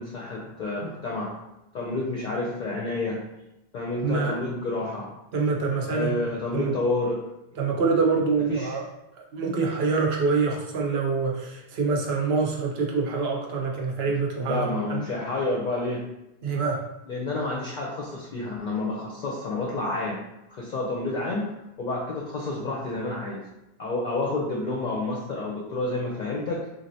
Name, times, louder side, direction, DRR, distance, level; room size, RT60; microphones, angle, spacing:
voice 1, 0.0-1.3 1.7-3.2 3.7-5.1 5.9-7.2 8.5-8.8 14.1-14.2 14.4-16.1 17.0-20.2 20.5-21.5 21.8-23.5 23.8-26.7, left 2 dB, 55° left, -3 dB, 0.6 m, -29 dB
voice 2, 4.0-4.3 5.3-6.1 6.5-6.7 7.6-8.8 9.3-15.0 16.4-16.8, right 4 dB, 70° right, 0 dB, 0.8 m, -25 dB
3.2 x 2.6 x 2.7 m, 0.91 s
omnidirectional pair, 1.1 m